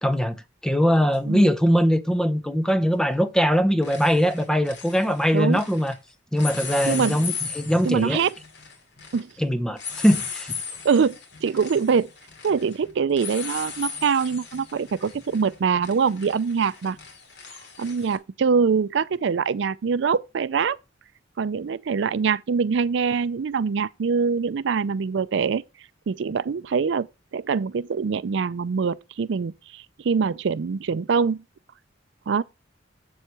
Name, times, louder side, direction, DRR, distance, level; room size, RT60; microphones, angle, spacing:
voice 1, 0.0-5.9 6.3-8.2 9.4-10.6, equal, 5° left, 0.7 m, -21 dB
sound 1, 1.1-1.2 3.0-3.3 3.5-6.0 6.3-18.2, left 6 dB, 65° left, 2.6 m, -37 dB
voice 2, 6.9-7.2 7.8-8.3 9.1-9.3 10.8-11.2 11.4-12.1 12.4-17.0 17.8-20.8 21.4-25.6 26.1-27.1 27.3-31.4 32.3-32.4, right 5 dB, 70° right, 0.4 m, -24 dB
7.8 x 7.3 x 4.7 m
head